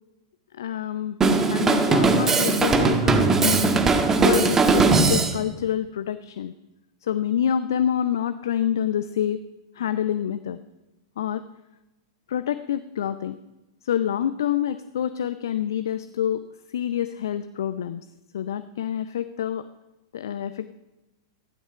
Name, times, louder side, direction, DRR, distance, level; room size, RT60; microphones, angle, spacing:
voice 1, 0.5-1.2 1.5-3.7 4.2-6.5 7.0-9.4 9.8-10.6 11.2-11.4 12.3-13.4 13.8-16.4 16.7-18.0 18.3-19.7 20.1-20.7, left 9 dB, 60° left, 13 dB, 0.5 m, -27 dB
Drum kit, 1.2-5.4, right 4 dB, 15° right, 1.3 m, -19 dB
15.0 x 11.0 x 5.6 m, 1.0 s
figure-of-eight pair, 95°, 2 cm